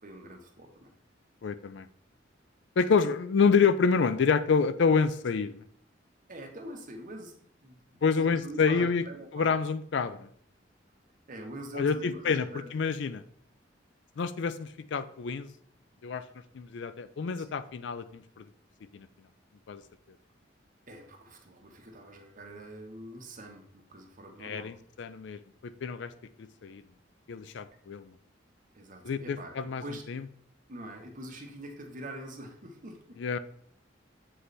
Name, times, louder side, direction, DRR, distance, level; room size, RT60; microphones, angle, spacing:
voice 1, 0.0-0.9 6.3-7.3 7.6-9.5 11.3-12.7 20.9-24.7 28.7-29.5 29.8-30.0 30.7-33.2, right 1 dB, 45° right, 3 dB, 1.1 m, -44 dB
voice 2, 1.4-1.9 2.8-5.6 8.0-9.0 9.3-10.3 11.7-12.4 12.7-13.2 14.2-15.5 16.0-16.2 16.5-18.4 18.9-19.1 19.7-19.8 24.4-26.1 26.6-26.8 27.3-28.1 29.0-29.8 30.1-30.2 33.2-33.4, left 5 dB, 70° left, 13 dB, 0.4 m, -27 dB
7.7 x 3.3 x 4.1 m, 0.63 s
head